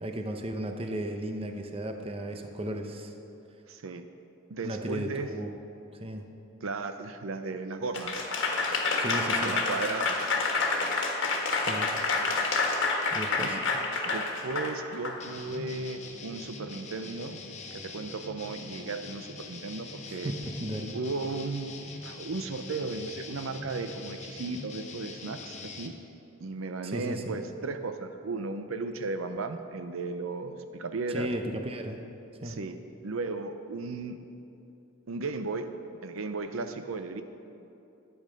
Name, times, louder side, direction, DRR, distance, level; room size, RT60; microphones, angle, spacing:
voice 1, 0.0-3.1 4.6-5.5 5.9-6.2 9.0-9.5 11.6-11.9 13.1-13.6 20.1-20.9 26.8-27.4 31.1-32.0 32.4-32.6, right 1 dB, 30° right, 5 dB, 0.8 m, -35 dB
voice 2, 3.7-4.0 4.5-5.3 6.6-8.3 9.4-10.3 13.4-13.6 14.0-17.4 17.7-20.3 20.9-21.8 22.0-26.0 26.4-31.3 32.4-32.7 33.0-34.2 35.1-35.7 36.0-37.2, right 3 dB, 85° right, 8 dB, 0.6 m, -35 dB
Applause / Crowd, 7.9-15.2, left 3 dB, 60° left, 1.5 m, -28 dB
sound 1, 15.2-25.9, left 4 dB, 35° left, 0.9 m, -43 dB
12.0 x 8.7 x 5.2 m, 2.7 s
head